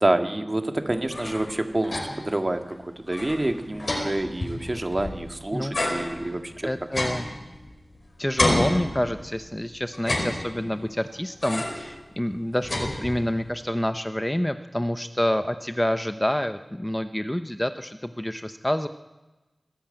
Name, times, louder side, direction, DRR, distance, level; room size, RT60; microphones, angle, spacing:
voice 1, 0.0-6.7, right 1 dB, 35° right, 6 dB, 1.9 m, -27 dB
sound 1, 0.9-2.3 2.7-2.8 3.1-5.3 5.7-8.0 8.4-9.5 9.9-10.8 11.4-11.9 12.3-13.4, left 1 dB, 55° left, 5.1 m, -29 dB
voice 2, 5.5-6.2 6.6-7.2 8.2-18.9, left 1 dB, 10° left, 9 dB, 0.7 m, -28 dB
22.0 x 13.5 x 8.9 m, 1.1 s
wide cardioid pair, 55°, 0 cm